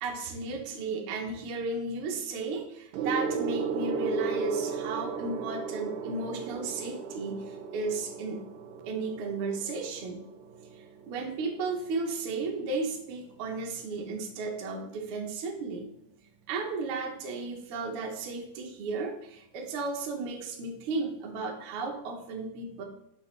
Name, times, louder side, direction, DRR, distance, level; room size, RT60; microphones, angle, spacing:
voice 1, 0.0-8.4 8.9-10.2 10.7-15.9 16.5-22.8, right 3 dB, 60° right, 1 dB, 1.6 m, -34 dB
Gong, 2.9-12.7 13.6-13.9, right 6 dB, 80° right, 1.9 m, -36 dB
6.1 x 5.9 x 3.2 m, 0.83 s
omnidirectional pair, 3.3 m